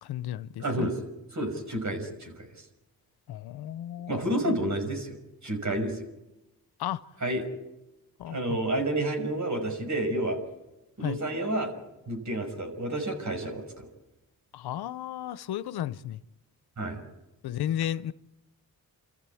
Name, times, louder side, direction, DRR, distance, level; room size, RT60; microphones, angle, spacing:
voice 1, 0.0-0.9 3.3-4.6 6.8-7.0 8.2-8.6 11.0-11.2 14.5-16.2 17.4-18.1, left 11 dB, 90° left, 0.8 m, -34 dB
voice 2, 0.6-1.0 1.3-2.5 4.1-5.2 5.4-6.0 7.2-7.5 8.3-10.4 11.0-11.7 12.1-13.9 16.8-17.0, right 1 dB, 50° right, 6.0 m, -30 dB
27.5 x 14.5 x 8.5 m
cardioid pair, 65°, 37 cm